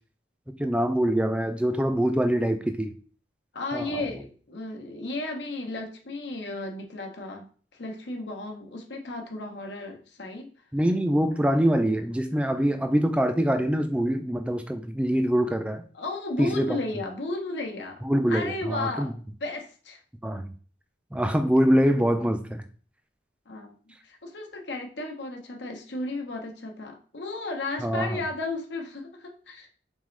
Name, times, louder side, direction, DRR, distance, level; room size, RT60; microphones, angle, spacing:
voice 1, 0.6-2.9 3.7-4.1 10.7-15.8 16.4-16.8 18.0-19.1 20.2-20.5 21.1-22.6 27.8-28.2, equal, 5° right, 7 dB, 0.3 m, -24 dB
voice 2, 3.5-7.4 7.7-10.5 15.9-18.0 18.3-20.0 23.5-23.7 24.0-29.7, left 2 dB, 80° left, 2 dB, 0.9 m, -34 dB
4.0 x 3.6 x 3.2 m, 0.41 s
head